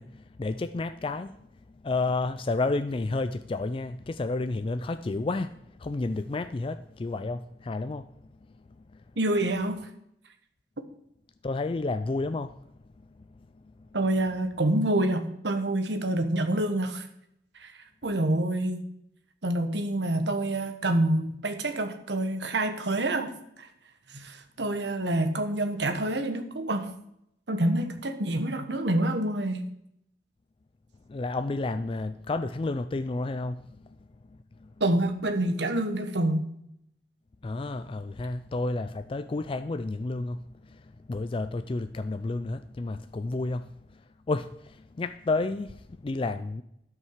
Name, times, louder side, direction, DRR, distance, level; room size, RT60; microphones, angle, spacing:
voice 1, 0.0-1.3 1.8-5.5 5.8-8.1 11.4-12.6 31.1-33.7 34.6-34.7 37.4-40.4 41.1-43.7 44.3-46.6, left 3 dB, 30° left, 0.4 m, -31 dB
voice 2, 9.2-9.8 13.9-17.1 17.6-17.7 18.0-18.8 19.4-23.3 23.6-23.7 24.1-26.9 27.5-29.6 34.8-36.5, right 1 dB, 75° right, 1.3 m, -27 dB
12.5 x 5.5 x 6.5 m
head